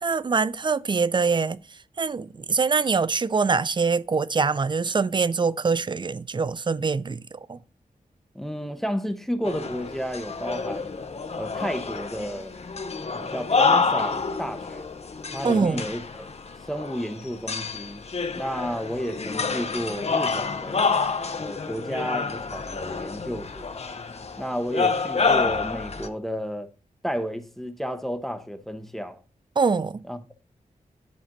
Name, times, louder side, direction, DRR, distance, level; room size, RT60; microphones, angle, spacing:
voice 1, 0.0-7.6 15.4-15.8 29.6-30.0, right 4 dB, 30° right, 0.4 m, -24 dB
voice 2, 8.3-11.0 11.4-12.5 13.1-14.9 15.3-16.3 16.7-18.0 18.3-20.9 21.4-23.7 24.4-26.7 27.0-29.2 30.1-30.3, equal, ahead, 0.9 m, -32 dB
sound 1, 9.4-26.1, left 4 dB, 45° left, 0.9 m, -28 dB
10.5 x 4.3 x 4.0 m
wide cardioid pair, 80°, 15 cm